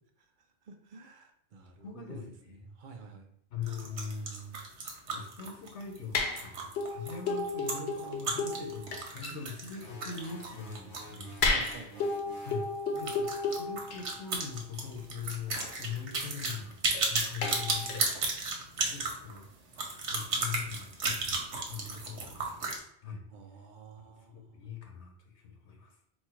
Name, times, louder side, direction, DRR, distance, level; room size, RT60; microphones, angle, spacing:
voice 1, 0.6-3.3 9.3-9.5 11.4-12.1 23.3-24.6, right 4 dB, 55° right, 4 dB, 0.7 m, -50 dB
voice 2, 1.8-2.6 3.5-4.6 5.1-11.3 12.4-18.3 18.7-19.5 20.1-22.7 23.0-23.2 24.0-26.0, left 6 dB, 85° left, 3 dB, 1.2 m, -42 dB
sound 1, 3.6-11.8 12.1-12.2 12.5-12.6 13.0-22.8, right 3 dB, 85° right, 1.2 m, -34 dB
sound 2, 6.1-6.5 6.8-9.4 10.2-10.3 11.4-14.1 15.5-15.7 16.9-17.1 17.4-18.0, left 3 dB, 70° left, 0.9 m, -32 dB
sound 3, 9.8-12.7, right 1 dB, 20° left, 0.7 m, -50 dB
4.3 x 2.3 x 4.3 m, 0.69 s
omnidirectional pair, 1.1 m